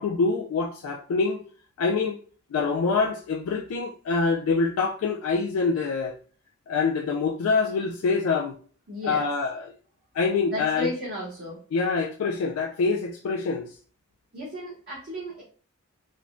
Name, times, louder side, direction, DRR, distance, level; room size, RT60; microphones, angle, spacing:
voice 1, 0.0-1.4 1.8-2.2 2.5-6.1 6.7-8.6 9.0-9.7 10.1-10.9 11.7-13.7, left 4 dB, 70° left, 1 dB, 0.3 m, -25 dB
voice 2, 8.9-9.3 10.4-11.6 14.3-15.4, left 1 dB, 45° right, -7 dB, 0.9 m, -34 dB
3.3 x 2.2 x 2.4 m, 0.42 s
head